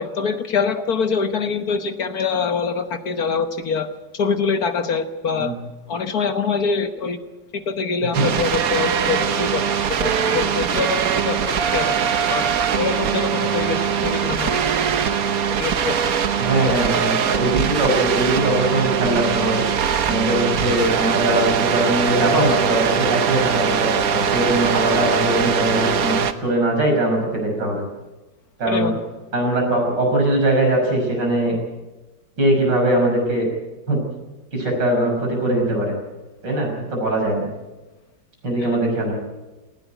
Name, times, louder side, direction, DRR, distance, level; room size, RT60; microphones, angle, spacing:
voice 1, 0.0-3.9 4.1-5.5 5.9-7.2 7.5-9.7 10.0-12.4 12.8-14.6 15.6-16.0 16.6-16.8 28.7-28.9 38.6-38.8, left 5 dB, 60° left, 9 dB, 1.6 m, -24 dB
sound 1, 8.1-26.3, right 7 dB, 55° right, 1.4 m, -21 dB
voice 2, 16.4-19.6 20.1-27.8 28.6-28.9 29.3-31.6 32.4-33.5 33.9-34.0 34.5-35.9 36.4-37.4 38.4-39.1, right 1 dB, 75° right, 1 dB, 6.8 m, -21 dB
19.0 x 16.5 x 9.1 m, 1.1 s
omnidirectional pair, 1.9 m